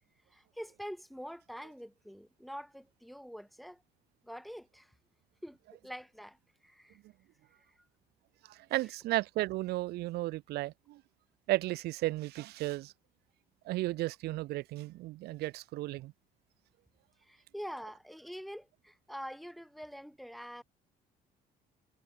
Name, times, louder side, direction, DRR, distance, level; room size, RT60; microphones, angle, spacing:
voice 1, 0.3-3.8 4.2-4.9 5.4-5.6 5.8-6.4 6.6-7.0 17.2-20.6, equal, ahead, 1.7 m, -45 dB
voice 2, 8.4-11.0 11.5-12.9 13.6-16.1, right 18 dB, 75° right, 0.5 m, -34 dB
cardioid pair, 110°, 17 cm